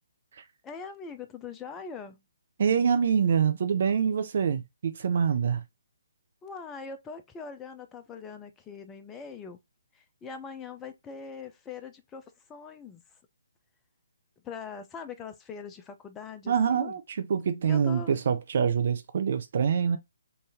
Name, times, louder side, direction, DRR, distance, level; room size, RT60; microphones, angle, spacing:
voice 1, 0.6-2.2 6.4-9.6 9.9-13.0 14.4-17.0 17.6-18.2, left 5 dB, 15° left, 0.4 m, -42 dB
voice 2, 2.6-5.6 16.5-20.0, right 7 dB, 50° right, 0.6 m, -25 dB
3.9 x 2.6 x 2.8 m
figure-of-eight pair, 135°, 0 cm